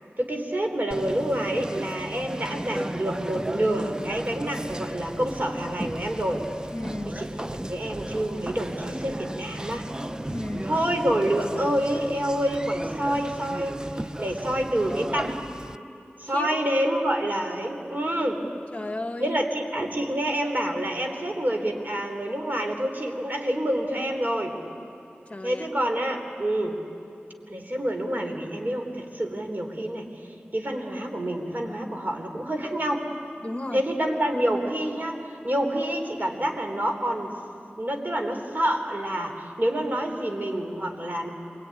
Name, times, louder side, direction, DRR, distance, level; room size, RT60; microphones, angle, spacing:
voice 1, 0.2-6.4 7.1-7.4 7.7-9.9 10.6-15.5 16.2-18.4 19.2-24.6 25.4-26.8 27.5-30.1 30.5-33.1 33.7-37.4 37.8-41.3, right 1 dB, 45° right, 4 dB, 3.7 m, -27 dB
Conversation, 0.9-15.8, right 1 dB, 20° right, 0.6 m, -35 dB
voice 2, 6.7-7.3 10.3-10.8 16.3-16.5 18.7-19.4 25.3-25.7 33.4-33.8, left 1 dB, 30° left, 7 dB, 1.4 m, -34 dB
26.5 x 22.5 x 9.8 m, 2.8 s
wide cardioid pair, 55°, 4 cm